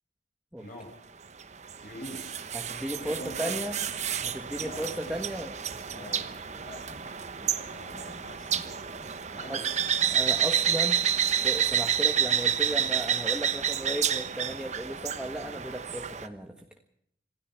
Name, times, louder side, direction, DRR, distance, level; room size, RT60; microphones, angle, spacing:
voice 1, 0.6-0.9 1.8-2.4 3.0-3.6 4.2-5.1 5.8-10.2, left 1 dB, 50° left, 0 dB, 5.7 m, -46 dB
sound 1, 1.4-16.3, right 8 dB, 40° right, 1.1 m, -29 dB
voice 2, 2.5-3.8 4.2-5.5 6.0-6.2 9.5-9.6 10.1-11.0 11.4-16.6, right 1 dB, 5° right, 2 dB, 1.5 m, -35 dB
27.0 x 17.0 x 5.9 m, 0.71 s
head